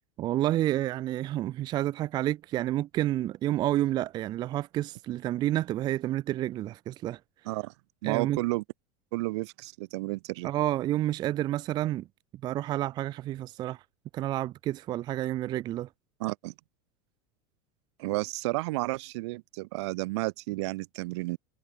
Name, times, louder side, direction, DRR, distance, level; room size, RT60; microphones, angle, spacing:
voice 1, 0.2-7.2 8.0-8.4 10.4-12.1 12.4-13.8 14.1-15.9, right 14 dB, 30° right, 0.4 m, -29 dB
voice 2, 8.0-8.6 9.1-10.5 16.2-16.5 18.0-21.4, right 22 dB, 70° right, 1.1 m, -32 dB
supercardioid pair, 150°, 15 cm